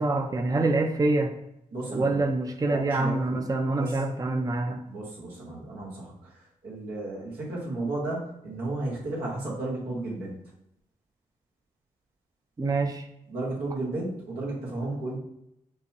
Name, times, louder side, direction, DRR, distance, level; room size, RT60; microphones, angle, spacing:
voice 1, 0.0-1.3 1.9-4.8 12.6-13.1, right 2 dB, 25° right, 4 dB, 0.5 m, -26 dB
voice 2, 1.7-2.3 2.6-3.4 3.7-4.0 4.9-10.4 13.3-15.2, right 2 dB, 90° right, -6 dB, 1.3 m, -33 dB
5.3 x 2.2 x 2.9 m, 0.81 s
supercardioid pair, 40°, 16 cm